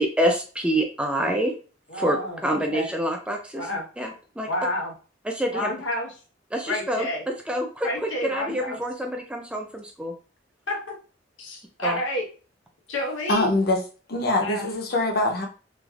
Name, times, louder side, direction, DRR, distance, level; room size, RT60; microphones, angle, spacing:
voice 1, 0.0-1.5 1.9-3.7 4.0-4.5 5.3-5.7 6.5-10.1 11.8-12.0, right 1 dB, 5° right, 2 dB, 0.3 m, -27 dB
voice 2, 1.9-2.9 3.5-3.8 4.4-4.9 5.5-6.1 6.6-7.2 7.8-8.8 10.7-10.9 11.4-12.2 12.9-13.5 14.4-14.7, left 1 dB, 90° left, 0 dB, 1.0 m, -29 dB
voice 3, 13.3-13.8 14.1-15.5, left 1 dB, 55° left, 2 dB, 0.6 m, -23 dB
3.2 x 2.4 x 2.4 m, 0.36 s
head